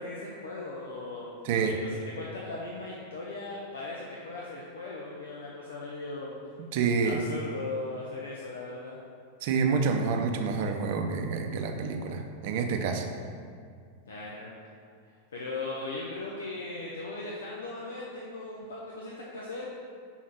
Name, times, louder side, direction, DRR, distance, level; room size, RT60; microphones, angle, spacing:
voice 1, 0.0-1.4 1.6-6.4 7.0-9.0 14.1-14.5 15.1-19.7, left 2 dB, 65° left, -4 dB, 0.8 m, -38 dB
voice 2, 6.7-7.2 9.4-13.1, right 5 dB, 50° right, 4 dB, 0.7 m, -28 dB
6.0 x 4.0 x 5.9 m, 2.2 s
figure-of-eight pair, 90°, 0 cm